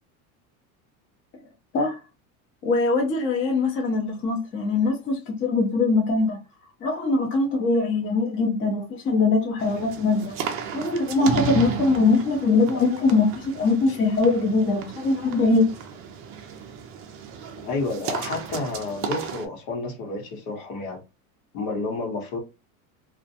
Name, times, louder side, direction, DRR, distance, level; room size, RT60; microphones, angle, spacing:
voice 1, 2.6-6.4 6.8-10.4 10.7-15.7, left 3 dB, 30° left, 0.6 m, -22 dB
sound 1, 9.6-19.5, right 7 dB, 35° right, 0.4 m, -34 dB
voice 2, 17.5-21.0 21.5-22.4, left 3 dB, 75° left, 1.2 m, -30 dB
2.4 x 2.1 x 2.7 m
supercardioid pair, 140°, 42 cm